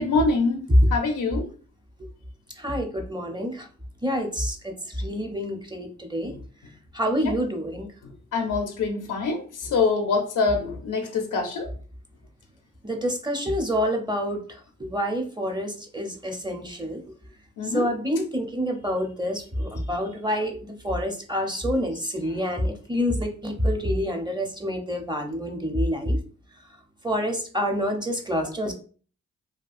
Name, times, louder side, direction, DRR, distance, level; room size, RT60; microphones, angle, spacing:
voice 1, 0.0-1.5 6.2-6.3 8.3-11.7 17.6-17.9, left 4 dB, 80° left, 4 dB, 0.6 m, -25 dB
voice 2, 2.6-3.7 4.0-6.3 6.9-7.9 12.8-17.0 17.6-26.2 27.0-28.7, equal, 15° right, 3 dB, 0.6 m, -27 dB
2.7 x 2.3 x 2.4 m, 0.41 s
cardioid pair, 50°, 31 cm